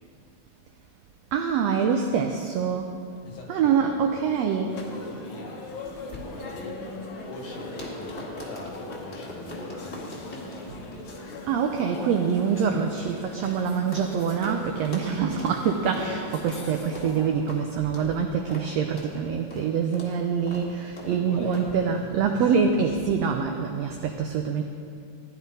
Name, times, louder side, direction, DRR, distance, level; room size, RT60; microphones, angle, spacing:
voice 1, 1.3-2.9 3.5-4.9 11.5-24.6, right 6 dB, 85° right, 3 dB, 1.4 m, -25 dB
voice 2, 3.2-5.6 6.1-6.8 7.3-10.7 21.0-23.0, left 1 dB, 75° left, -1 dB, 3.3 m, -42 dB
sound 1, 4.7-17.3, left 3 dB, 55° left, 1.7 m, -40 dB
sound 2, 5.8-14.1 14.4-14.6 14.8-15.1 15.4-15.6 15.9-16.1 16.5-16.6 16.9-17.1 17.5-17.6 17.9-18.1 18.5-18.7 19.0-19.1 19.5-19.7 19.9-20.1 20.5-20.7 21.0-21.1 21.5-21.7, left 1 dB, 30° left, 1.4 m, -42 dB
sound 3, 7.8-9.4 9.6-9.9 10.2-11.0 11.5-12.2 12.5-18.4 18.8-23.4 23.8-23.9, right 3 dB, 60° right, 3.2 m, -50 dB
15.5 x 10.5 x 4.1 m, 2.3 s
omnidirectional pair, 3.7 m